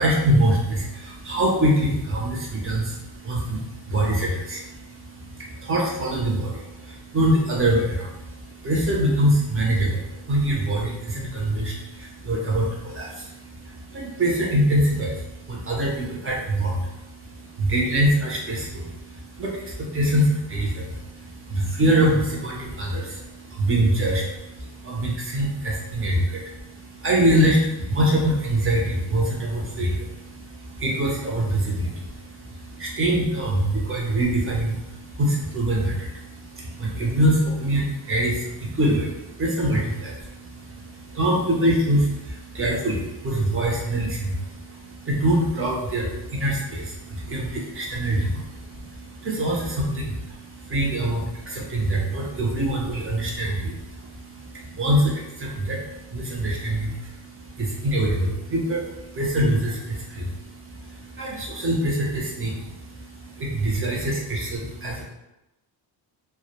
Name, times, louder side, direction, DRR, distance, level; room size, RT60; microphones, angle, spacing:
voice 1, 0.0-65.0, right 1 dB, 30° right, -3 dB, 0.6 m, -24 dB
2.2 x 2.1 x 2.9 m, 0.94 s
cardioid pair, 105°, 45 cm